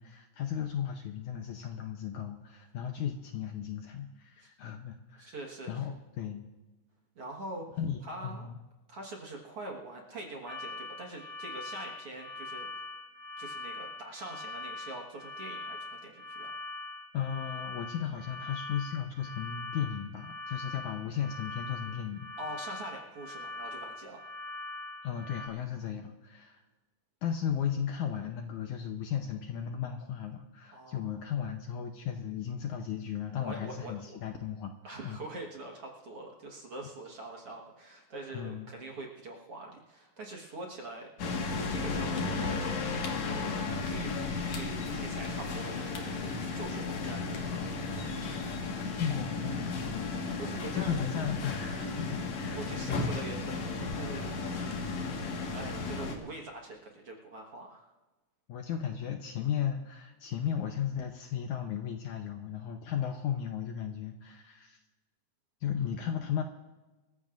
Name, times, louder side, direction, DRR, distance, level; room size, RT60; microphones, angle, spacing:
voice 1, 0.0-5.4 5.7-6.4 7.8-8.6 17.1-22.3 25.0-26.6 27.2-34.7 35.0-35.2 38.3-38.7 48.9-50.4 50.7-53.2 55.1-55.4 58.5-64.8 65.6-66.4, left 8 dB, 75° left, 4 dB, 1.8 m, -35 dB
voice 2, 5.2-5.9 7.2-7.7 8.0-8.5 8.9-12.7 13.4-16.5 22.4-24.2 30.7-31.2 33.4-34.2 34.8-41.1 41.6-43.0 43.6-48.0 50.4-51.0 52.5-54.9 55.5-57.9, right 2 dB, 50° right, -1 dB, 1.8 m, -44 dB
sound 1, 10.5-25.5, left 2 dB, 15° left, 3.1 m, -42 dB
sound 2, 41.2-56.2, left 3 dB, 55° left, 2.7 m, -34 dB
26.5 x 14.5 x 2.5 m, 1.2 s
omnidirectional pair, 4.2 m